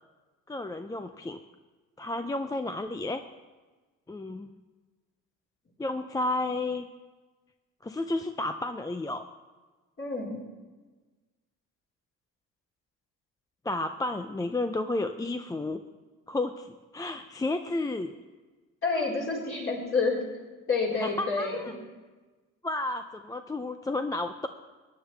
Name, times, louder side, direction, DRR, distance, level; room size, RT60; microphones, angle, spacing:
voice 1, 0.5-1.4 2.0-3.2 4.1-4.5 5.8-6.9 7.8-9.3 13.6-15.8 16.3-18.1 21.0-21.7 22.6-24.5, left 2 dB, 10° left, 8 dB, 0.4 m, -32 dB
voice 2, 10.0-10.4 18.8-20.2 20.7-21.6, left 4 dB, 40° left, -3 dB, 4.3 m, -28 dB
16.0 x 9.9 x 3.3 m, 1.3 s
supercardioid pair, 85°, 32 cm